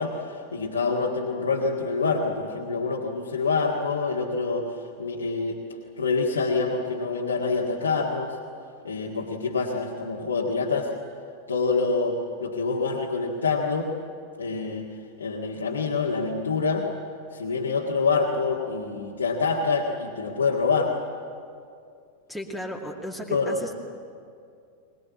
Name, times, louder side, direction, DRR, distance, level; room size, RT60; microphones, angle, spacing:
voice 1, 0.0-5.6 6.0-8.4 8.8-10.9 11.5-13.9 14.4-14.9 15.2-16.9 17.3-20.9 23.3-23.6, left 4 dB, 75° left, -2 dB, 1.8 m, -26 dB
voice 2, 22.3-23.7, equal, 5° right, 0 dB, 2.3 m, -35 dB
22.5 x 19.5 x 8.5 m, 2.3 s
figure-of-eight pair, 90°, 0 cm